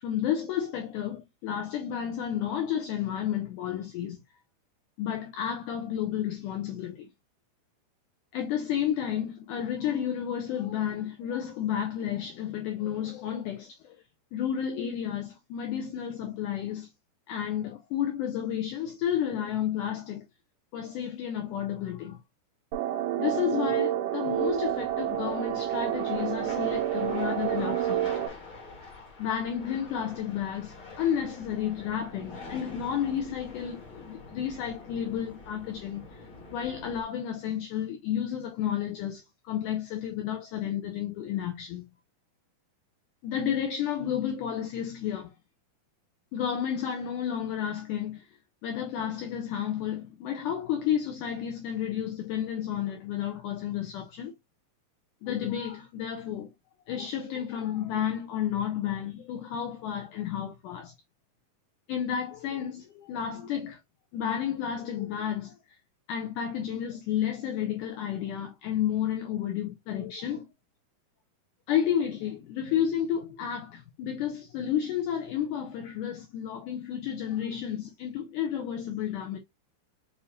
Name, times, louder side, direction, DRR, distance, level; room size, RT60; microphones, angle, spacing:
voice 1, 0.0-4.2 5.0-7.1 8.3-14.0 14.3-16.9 17.3-20.3 20.7-22.2 23.2-28.1 29.2-41.9 43.2-45.3 46.3-48.3 48.6-54.3 55.2-56.5 56.9-60.9 61.9-63.8 64.1-65.8 66.1-70.5 71.7-79.4, left 9 dB, 85° left, 1.8 m, -31 dB
sound 1, 22.7-28.3, right 12 dB, 80° right, 2.4 m, -29 dB
sound 2, 24.3-37.0, left 3 dB, 50° left, 1.5 m, -45 dB
6.6 x 2.7 x 2.5 m
omnidirectional pair, 4.3 m